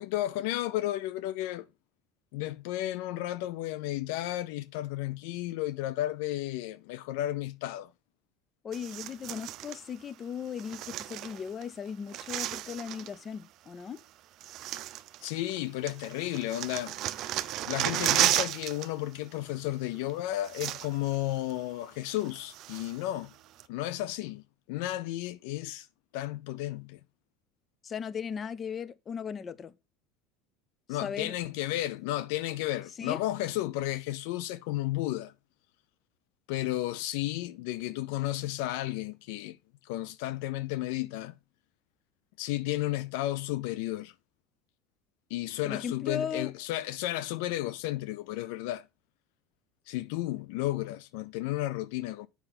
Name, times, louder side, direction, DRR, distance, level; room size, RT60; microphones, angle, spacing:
voice 1, 0.0-1.7 2.3-7.9 15.2-16.9 17.6-23.3 23.7-24.4 24.7-25.9 26.1-27.0 30.9-35.3 36.5-39.6 39.8-41.3 42.4-44.1 45.3-48.8 49.9-52.3, left 15 dB, 75° left, 0.4 m, -33 dB
voice 2, 8.6-14.0 27.8-29.7 30.9-31.3 33.0-33.2 45.6-46.5, left 7 dB, 35° left, 0.6 m, -37 dB
sound 1, 8.7-9.8 10.6-11.6 11.9-13.2 14.0-14.1 14.4-15.6 15.9-18.9 19.1-19.4 20.1-20.2 20.4-21.2 21.5-21.6 22.1-23.1 23.6-23.7, right 13 dB, 55° right, 0.6 m, -33 dB
7.9 x 5.5 x 4.2 m
supercardioid pair, 110°, 0 cm